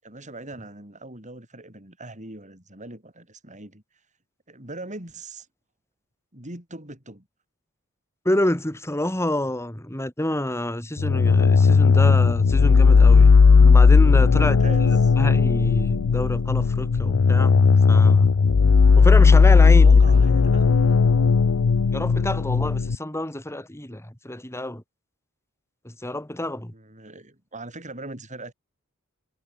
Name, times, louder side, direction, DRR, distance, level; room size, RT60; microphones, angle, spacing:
voice 1, 0.0-3.8 4.5-5.5 6.3-7.3 14.4-15.1 19.8-21.0 26.7-28.5, right 2 dB, 35° right, 7.7 m, -41 dB
voice 2, 8.2-14.6 15.2-18.3 19.0-20.0 21.9-24.8 25.8-26.7, left 1 dB, 10° left, 2.5 m, -28 dB
sound 1, 11.0-22.9, left 5 dB, 90° left, 0.5 m, -16 dB
head